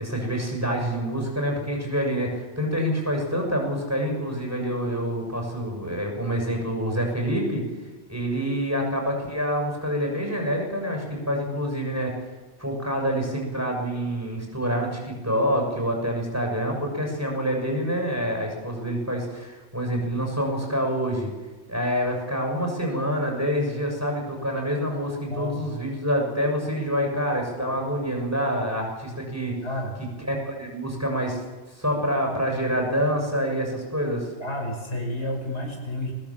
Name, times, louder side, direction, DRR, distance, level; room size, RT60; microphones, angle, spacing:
voice 1, 0.0-7.6 8.1-12.3 12.6-21.3 21.7-29.6 30.3-31.4 31.7-34.3, equal, 15° right, 1 dB, 6.6 m, -27 dB
voice 2, 25.3-25.6 27.5-27.8 29.6-30.0 34.4-36.1, left 1 dB, 80° left, 1 dB, 6.0 m, -31 dB
24.5 x 19.0 x 7.4 m, 1.2 s
omnidirectional pair, 1.1 m